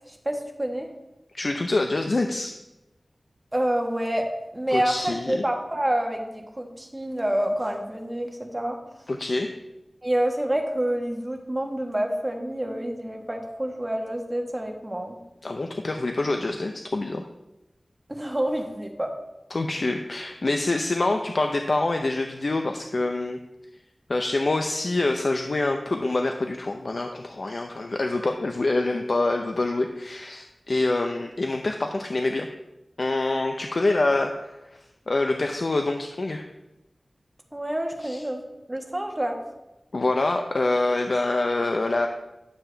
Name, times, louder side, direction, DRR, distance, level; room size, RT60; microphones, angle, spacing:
voice 1, 0.1-0.9 3.5-4.3 4.5-8.8 10.0-15.2 18.1-19.1 37.5-38.4 38.7-39.4, right 1 dB, 20° right, 2 dB, 1.4 m, -28 dB
voice 2, 1.3-2.5 4.7-5.4 9.1-9.5 15.4-17.2 19.5-23.4 24.1-32.5 33.0-34.8 35.1-36.5 38.0-38.2 39.9-42.1, left 2 dB, 60° left, 4 dB, 0.6 m, -26 dB
11.5 x 7.4 x 3.4 m, 0.97 s
wide cardioid pair, 70°, 0 cm